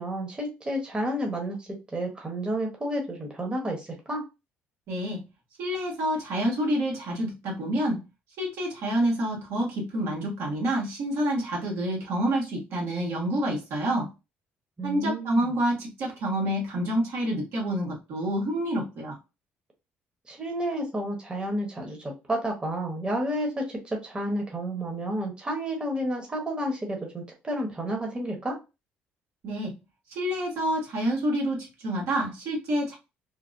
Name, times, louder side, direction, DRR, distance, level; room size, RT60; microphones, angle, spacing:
voice 1, 0.0-4.2 14.8-15.5 20.3-28.6, right 1 dB, 20° right, 1 dB, 1.1 m, -31 dB
voice 2, 4.9-5.2 5.6-8.0 8.4-14.1 14.8-19.2 29.4-29.7 30.1-32.9, right 1 dB, 70° right, -2 dB, 1.4 m, -28 dB
3.2 x 2.1 x 2.6 m, 0.26 s
supercardioid pair, 80°, 4 cm